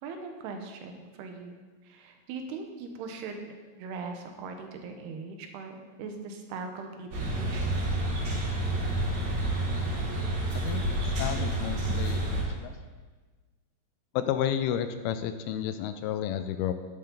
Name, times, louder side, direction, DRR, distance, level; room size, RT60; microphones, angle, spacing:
voice 1, 0.0-1.6 1.8-3.5 3.8-7.9, right 4 dB, 85° right, 4 dB, 3.1 m, -40 dB
sound 1, 7.1-12.4, right 1 dB, 60° right, 3.7 m, -29 dB
voice 2, 11.2-12.8 14.1-16.7, left 10 dB, 85° left, 10 dB, 2.4 m, -31 dB
11.0 x 10.5 x 3.9 m, 1.4 s
omnidirectional pair, 4.6 m